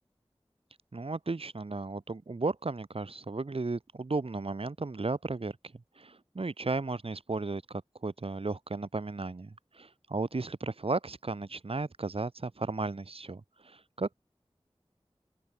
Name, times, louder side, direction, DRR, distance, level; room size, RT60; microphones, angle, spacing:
voice 1, 0.9-14.1, right 3 dB, 65° right, 0.8 m, -35 dB
open air
wide cardioid pair, 45°, 11 cm